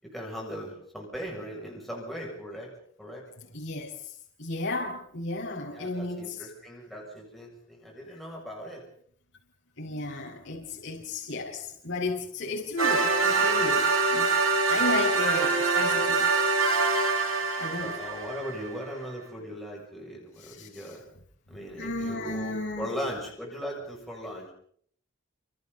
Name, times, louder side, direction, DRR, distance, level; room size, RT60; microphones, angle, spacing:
voice 1, 0.0-2.7 3.0-3.2 5.7-8.8 17.8-21.0 21.5-24.5, equal, ahead, -3 dB, 7.3 m, -38 dB
voice 2, 3.5-3.9 4.4-6.3 9.8-14.4 14.7-16.3 17.6-17.9 20.4-20.7 21.8-22.9, left 2 dB, 70° left, -4 dB, 5.6 m, -33 dB
sound 1, 12.8-18.7, right 4 dB, 85° right, 7.8 m, -24 dB
29.0 x 28.5 x 4.2 m, 0.62 s
head